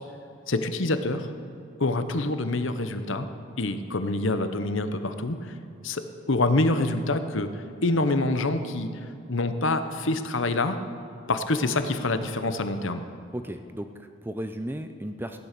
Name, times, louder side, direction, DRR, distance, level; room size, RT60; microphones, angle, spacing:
voice 1, 0.5-1.3 1.8-3.3 3.6-5.5 5.8-7.5 7.8-8.9 9.3-10.8 11.3-13.0, left 2 dB, 60° left, 9 dB, 0.9 m, -26 dB
voice 2, 13.3-15.4, right 1 dB, 10° right, 7 dB, 0.4 m, -35 dB
16.0 x 11.0 x 6.7 m, 2.4 s
head